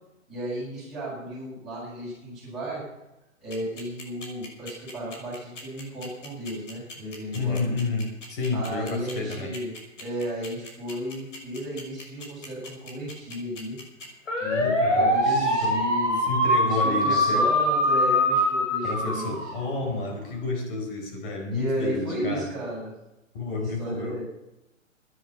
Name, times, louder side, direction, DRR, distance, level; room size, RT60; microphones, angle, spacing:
voice 1, 0.3-2.8 3.4-7.6 8.5-9.7 10.0-13.8 14.4-16.2 16.6-19.5 21.5-22.9 23.5-24.2, equal, ahead, -11 dB, 6.6 m, -34 dB
sound 1, 3.5-20.0, equal, 65° left, 6.1 m, -24 dB
voice 2, 7.3-9.5 14.5-15.9 16.3-17.5 18.8-22.5 23.3-24.2, left 3 dB, 40° left, 3 dB, 4.4 m, -30 dB
16.5 x 10.0 x 5.9 m, 0.93 s
hypercardioid pair, 145°, 40 cm